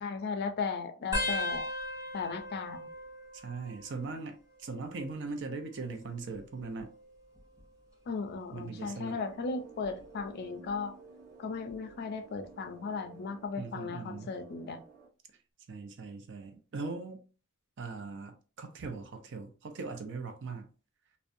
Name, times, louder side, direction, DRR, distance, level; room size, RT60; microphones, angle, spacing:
voice 1, 0.0-1.7 2.1-2.9 8.1-10.9 11.4-14.8, left 4 dB, 50° left, 0.4 m, -36 dB
sound 1, 1.1-4.3 4.6-5.2 6.2-7.7 8.3-8.6 9.8-10.2 11.7-11.8, left 1 dB, 15° right, 1.0 m, -39 dB
voice 2, 3.3-6.9 8.5-9.2 13.6-14.3 15.7-17.2 17.8-20.7, right 4 dB, 60° right, 0.5 m, -40 dB
sound 2, 8.8-15.1, right 4 dB, 40° right, 1.0 m, -54 dB
2.5 x 2.1 x 2.5 m
head